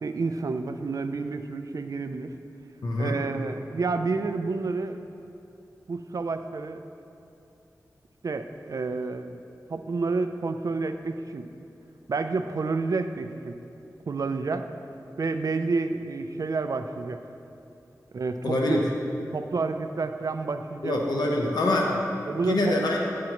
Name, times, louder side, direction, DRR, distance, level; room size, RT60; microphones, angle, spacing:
voice 1, 0.0-2.3 3.0-5.0 5.9-6.8 8.2-9.4 9.7-11.5 12.1-13.6 14.1-14.7 15.2-17.2 18.1-18.8 19.3-20.9 22.3-22.8, right 4 dB, 60° right, 8 dB, 0.4 m, -29 dB
voice 2, 2.8-3.2 18.4-18.8 20.8-22.0 22.4-23.0, left 1 dB, 90° left, -1 dB, 0.8 m, -25 dB
9.2 x 7.5 x 2.9 m, 2.7 s
wide cardioid pair, 70°, 7 cm